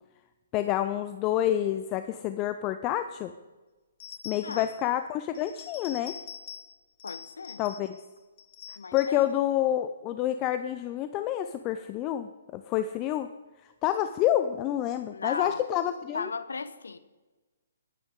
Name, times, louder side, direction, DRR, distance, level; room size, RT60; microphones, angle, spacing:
voice 1, 0.5-3.3 4.2-6.2 7.6-8.0 8.9-13.3 13.8-16.3, left 12 dB, 25° left, 0.5 m, -28 dB
sound 1, 4.0-4.8 5.3-6.7 7.0-8.0 8.4-9.2, left 8 dB, 45° left, 1.3 m, -45 dB
voice 2, 7.0-7.6 8.8-9.3 15.1-15.6 16.1-17.0, left 4 dB, 85° left, 1.0 m, -36 dB
20.0 x 9.4 x 3.7 m
hypercardioid pair, 145°, 0 cm